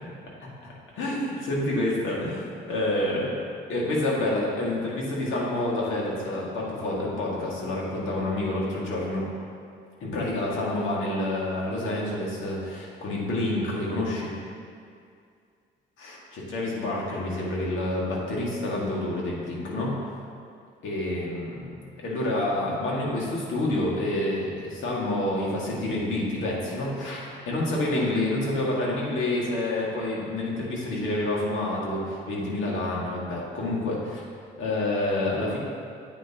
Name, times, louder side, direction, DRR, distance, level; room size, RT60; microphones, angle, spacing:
voice 1, 0.4-3.3 3.7-9.3 10.0-14.3 16.0-19.9 20.8-34.2 34.6-35.6, left 1 dB, 80° left, -4 dB, 2.1 m, -28 dB
10.0 x 8.3 x 3.0 m, 2.3 s
cardioid pair, 90°, 20 cm